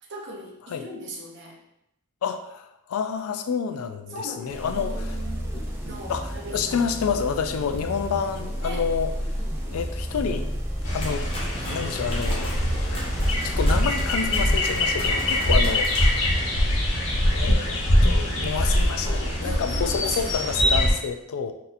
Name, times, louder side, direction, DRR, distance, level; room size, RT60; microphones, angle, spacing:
voice 1, 0.0-1.6 4.1-6.9 8.6-8.9 11.6-11.8 15.1-15.3 19.4-20.7, right 1 dB, 55° right, 0 dB, 0.7 m, -39 dB
voice 2, 2.2-5.1 6.1-9.1 9.7-10.5 10.9-11.3 11.7-12.5 13.2-15.9 17.2-21.5, left 6 dB, 85° left, 8 dB, 0.3 m, -29 dB
sound 1, 4.5-16.4, equal, 10° right, 0.5 m, -32 dB
sound 2, 10.8-20.9, left 1 dB, 65° left, 1.0 m, -23 dB
sound 3, 11.0-16.3, left 1 dB, 25° left, 0.8 m, -39 dB
4.0 x 2.7 x 2.5 m, 0.82 s
head